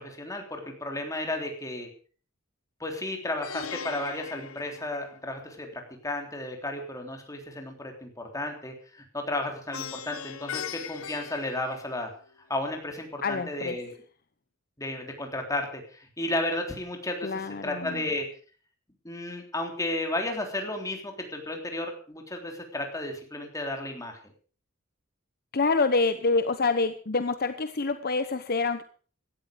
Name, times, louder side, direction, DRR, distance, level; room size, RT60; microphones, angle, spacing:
voice 1, 0.0-1.9 2.8-12.1 12.5-13.9 14.8-17.3 17.6-18.3 19.0-24.2, left 1 dB, 15° left, 3 dB, 3.5 m, -33 dB
Plucked string instrument, 3.4-5.6 9.7-12.3, left 8 dB, 80° left, 0.8 m, -39 dB
voice 2, 13.2-13.8 17.2-18.0 25.5-28.8, left 3 dB, 50° left, 10 dB, 0.9 m, -26 dB
16.5 x 13.0 x 5.2 m, 0.42 s
head